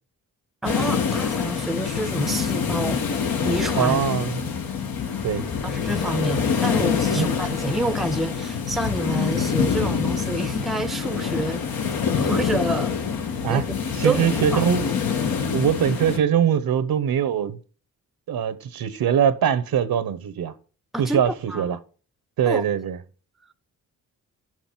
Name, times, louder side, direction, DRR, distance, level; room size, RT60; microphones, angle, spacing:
sound 1, 0.6-16.2, left 6 dB, 90° left, 1.6 m, -25 dB
voice 1, 0.6-4.0 5.6-12.9 13.5-13.6 14.0-14.6 20.9-21.2 21.5-21.7 22.5-22.6, right 1 dB, ahead, 0.6 m, -28 dB
voice 2, 3.8-4.5 5.2-5.5 7.1-7.3 13.4-13.7 14.0-15.1 15.5-17.6 18.3-20.5 21.0-21.8 22.4-23.0, right 8 dB, 80° right, 1.0 m, -22 dB
6.5 x 6.0 x 7.4 m
cardioid pair, 90°, 35 cm